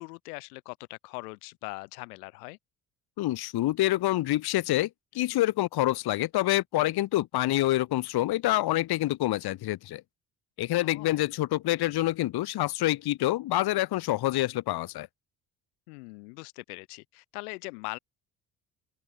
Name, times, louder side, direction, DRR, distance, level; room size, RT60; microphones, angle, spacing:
voice 1, 0.0-2.6 10.8-11.2 15.9-18.0, left 27 dB, 75° left, 5.3 m, -41 dB
voice 2, 3.2-4.9 5.1-10.0 10.6-15.1, left 16 dB, 55° left, 1.3 m, -27 dB
open air
hypercardioid pair, 55°, 45 cm